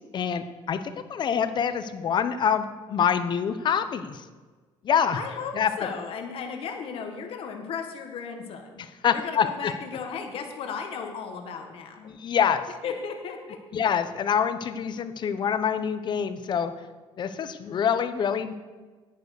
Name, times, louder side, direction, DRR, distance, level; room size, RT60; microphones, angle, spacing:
voice 1, 0.1-0.8 1.1-4.2 4.8-5.2 5.5-5.7 9.0-9.7 12.0-12.6 13.7-16.7 17.2-18.5, left 7 dB, 45° left, 11 dB, 0.9 m, -25 dB
voice 2, 5.1-8.8 9.1-12.1 12.8-13.6, left 6 dB, 60° left, 4 dB, 1.6 m, -35 dB
9.6 x 9.1 x 6.6 m, 1.4 s
cardioid pair, 110°, 10 cm